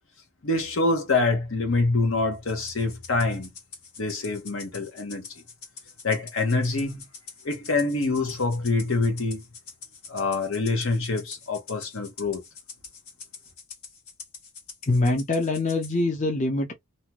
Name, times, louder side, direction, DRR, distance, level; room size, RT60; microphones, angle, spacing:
voice 1, 0.4-3.5 4.0-5.3 6.0-7.0 7.4-9.4 10.1-12.4, left 3 dB, 65° left, 0.9 m, -25 dB
Rattle (instrument), 2.5-16.0, left 5 dB, 80° left, 1.4 m, -45 dB
voice 2, 14.9-16.7, left 2 dB, 35° left, 0.6 m, -24 dB
2.8 x 2.3 x 2.9 m
head